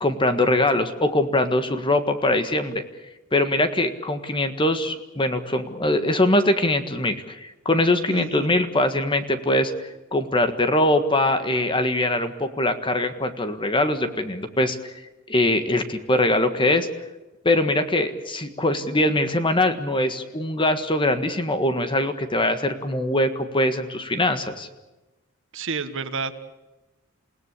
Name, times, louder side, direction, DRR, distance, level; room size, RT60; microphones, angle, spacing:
voice 1, 0.0-2.8 3.3-9.7 10.1-14.9 15.3-16.9 17.4-24.7, left 1 dB, 25° left, 9 dB, 1.6 m, -22 dB
voice 2, 8.1-8.5 25.5-26.4, right 4 dB, 60° right, 10 dB, 1.6 m, -30 dB
28.5 x 17.5 x 8.4 m, 1.1 s
head